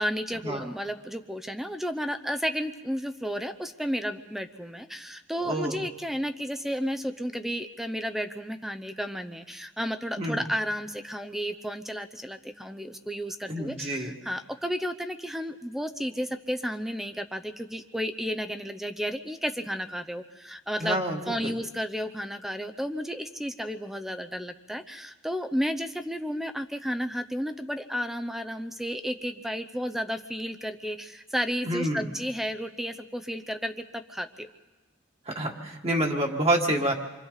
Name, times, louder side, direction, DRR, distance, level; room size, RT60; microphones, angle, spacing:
voice 1, 0.0-21.0 21.3-34.5, equal, ahead, 7 dB, 0.7 m, -32 dB
voice 2, 5.4-5.8 10.2-10.4 13.5-14.1 20.8-21.5 31.6-32.1 35.4-36.9, right 1 dB, 30° right, 0 dB, 1.9 m, -27 dB
28.0 x 24.5 x 4.1 m, 1.2 s
head